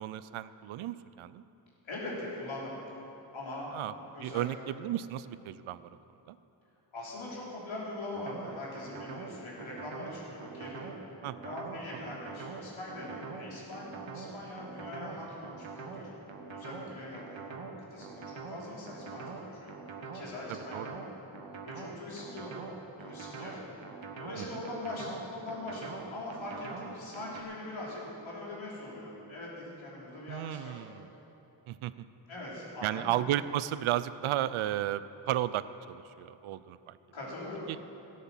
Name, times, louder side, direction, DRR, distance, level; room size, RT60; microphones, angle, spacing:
voice 1, 0.0-1.4 3.7-3.9 4.2-5.9 6.3-6.4 11.2-11.6 11.9-12.0 20.5-20.9 24.4-24.6 30.3-31.1 31.7-32.1 32.8-37.0 37.7-37.8, right 12 dB, 85° right, 15 dB, 0.6 m, -34 dB
voice 2, 1.8-2.8 3.3-4.4 6.9-10.9 11.4-16.1 16.5-17.4 17.9-19.7 20.1-21.0 21.6-22.5 23.0-23.6 24.2-30.8 32.3-33.2 37.1-37.7, left 2 dB, 75° left, -5 dB, 4.0 m, -42 dB
sound 1, 8.1-27.4, right 4 dB, 70° right, 1.4 m, -44 dB
13.5 x 9.5 x 7.2 m, 3.0 s
cardioid pair, 55°, 48 cm